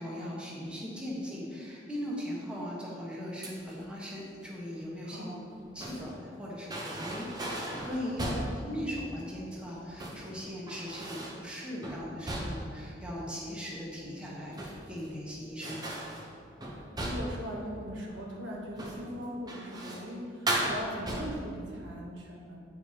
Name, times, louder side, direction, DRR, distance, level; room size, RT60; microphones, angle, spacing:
voice 1, 0.0-5.3 5.7-8.3 8.6-15.8, equal, 5° right, -6 dB, 1.1 m, -39 dB
sound 1, 3.4-3.8 5.4-6.2 6.7-8.6 9.8-10.3 10.7-11.4 11.8-12.8 14.3-15.1 15.6-17.4 18.7-19.1 19.5-20.1 20.5-21.5, right 1 dB, 20° right, 0.7 m, -36 dB
voice 2, 5.0-5.4 8.2-8.4 16.7-22.6, equal, 75° right, -2 dB, 1.1 m, -40 dB
8.7 x 4.8 x 2.8 m, 2.2 s
head